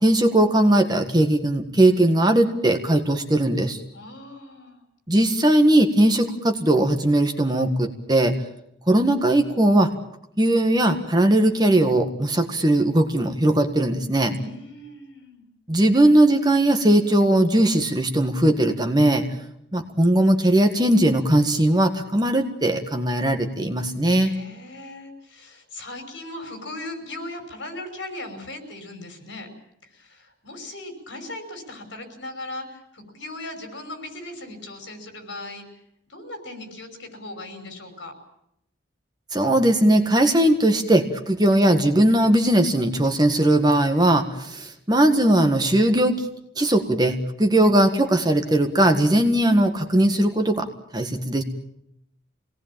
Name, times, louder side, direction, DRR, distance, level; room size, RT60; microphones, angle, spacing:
voice 1, 0.0-3.8 5.1-8.4 8.9-9.9 10.4-14.3 15.7-19.3 19.7-24.3 39.3-46.3 46.6-50.7 50.9-51.4, right 1 dB, 20° right, 6 dB, 1.7 m, -19 dB
voice 2, 3.9-4.8 14.3-15.4 24.2-29.5 29.8-35.7 36.1-38.1, left 2 dB, 70° left, 5 dB, 5.7 m, -38 dB
25.0 x 18.5 x 8.9 m, 0.78 s
head